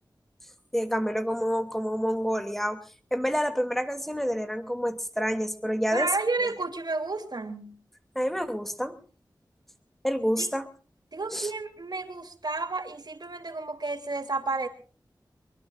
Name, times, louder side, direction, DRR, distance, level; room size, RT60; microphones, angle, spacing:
voice 1, 0.7-2.8 3.1-6.1 8.1-9.0 10.0-10.7 11.3-11.5, equal, 5° left, 7 dB, 2.6 m, -28 dB
voice 2, 5.9-7.7 10.4-10.5 11.1-14.7, right 3 dB, 60° right, 6 dB, 3.1 m, -31 dB
24.0 x 23.0 x 2.5 m, 0.40 s
wide cardioid pair, 65°, 8 cm